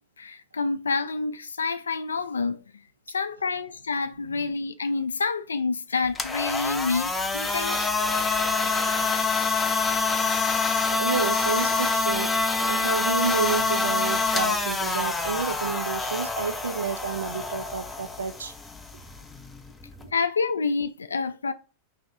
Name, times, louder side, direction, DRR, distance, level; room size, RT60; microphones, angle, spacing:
voice 1, 0.2-2.6 3.1-7.8 20.1-21.5, left 4 dB, 75° left, 0.3 m, -28 dB
sound 1, 6.0-20.1, left 3 dB, 10° left, 0.4 m, -26 dB
voice 2, 10.9-18.5, right 5 dB, 75° right, 0.4 m, -30 dB
3.0 x 2.7 x 3.5 m
figure-of-eight pair, 90°, 0 cm